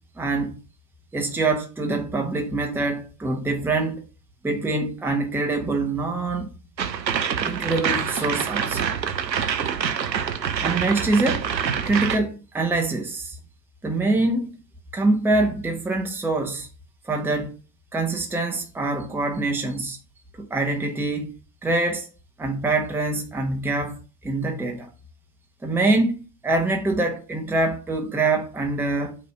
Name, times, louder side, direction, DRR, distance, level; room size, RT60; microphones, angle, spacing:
voice 1, 0.2-0.5 1.1-4.1 4.4-6.5 7.4-8.9 10.6-11.5 11.8-13.3 13.8-14.5 14.9-16.7 17.1-17.5 17.9-20.0 20.4-21.3 21.6-22.1 22.4-24.9 25.6-29.2, right 2 dB, 5° right, 1.0 m, -24 dB
sound 1, 6.8-12.2, right 7 dB, 85° right, 0.7 m, -26 dB
5.8 x 3.1 x 5.4 m
figure-of-eight pair, 80°, 49 cm